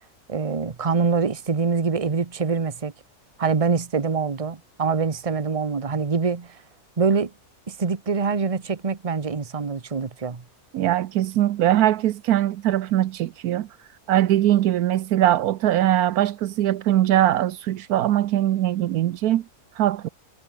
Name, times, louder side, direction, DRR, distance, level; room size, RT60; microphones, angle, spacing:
voice 1, 0.3-2.9 3.4-6.6 7.0-7.3 7.7-10.4, right 5 dB, 25° right, 1.1 m, -24 dB
voice 2, 10.7-13.7 14.1-19.4 19.8-20.1, right 13 dB, 80° right, 1.2 m, -21 dB
omnidirectional pair, 1.6 m